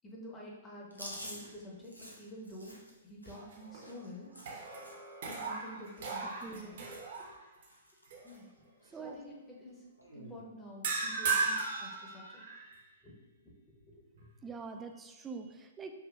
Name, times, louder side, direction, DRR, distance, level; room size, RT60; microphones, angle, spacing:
voice 1, 0.0-1.9 2.2-2.8 3.0-4.3 5.2-6.8 8.2-8.5 8.9-9.8 10.1-12.4 13.0-13.1 13.4-13.8 14.1-14.3, equal, 15° left, -3 dB, 0.9 m, -49 dB
Chewing mastication, 0.9-5.1 5.4-5.7 6.0-6.9 7.1-7.4 7.7-8.4 8.8-8.9 10.0-10.4, equal, 90° left, 0.8 m, -49 dB
sound 1, 3.3-4.0 4.4-7.7 8.1-8.4 10.8-12.8, right 4 dB, 50° right, 0.8 m, -36 dB
voice 2, 6.4-6.9 8.9-9.2 14.4-15.9, right 5 dB, 15° right, 5 dB, 0.3 m, -44 dB
5.6 x 2.8 x 2.4 m, 1.1 s
figure-of-eight pair, 115°, 0 cm